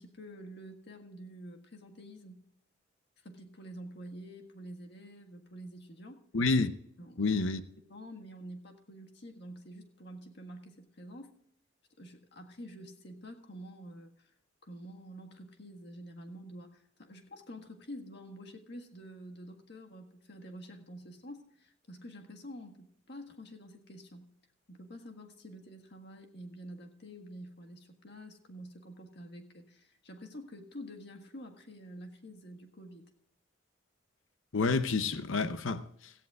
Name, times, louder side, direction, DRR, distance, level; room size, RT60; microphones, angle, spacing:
voice 1, 0.0-2.5 3.2-6.2 7.0-7.4 7.9-11.3 12.0-14.3 14.6-24.3 24.7-33.0, equal, 55° left, 1.7 m, -48 dB
voice 2, 6.3-6.7 7.2-7.6 34.5-36.1, left 3 dB, 80° left, 0.8 m, -29 dB
17.0 x 14.5 x 2.4 m
head